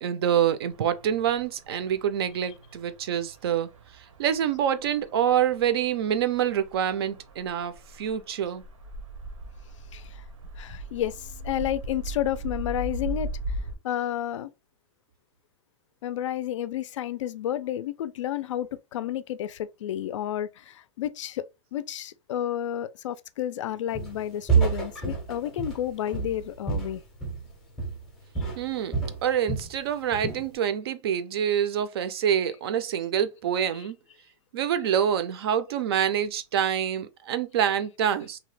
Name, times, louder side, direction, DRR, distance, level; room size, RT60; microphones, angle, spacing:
voice 1, 0.0-3.7 4.2-8.6 28.6-28.9 29.2-34.0 34.5-38.4, right 9 dB, 50° right, 0.4 m, -26 dB
sound 1, 0.6-13.7, right 1 dB, 85° right, 0.8 m, -39 dB
voice 2, 9.9-10.2 10.6-13.6 13.8-14.5 16.0-21.5 21.7-27.0 33.7-33.9, left 11 dB, 70° left, 0.4 m, -31 dB
Walk footsteps, 24.0-24.2 24.5-27.5 27.8-28.1 28.4-29.7 30.1-30.5, right 5 dB, ahead, 0.6 m, -28 dB
2.8 x 2.1 x 3.1 m
supercardioid pair, 170°, 16 cm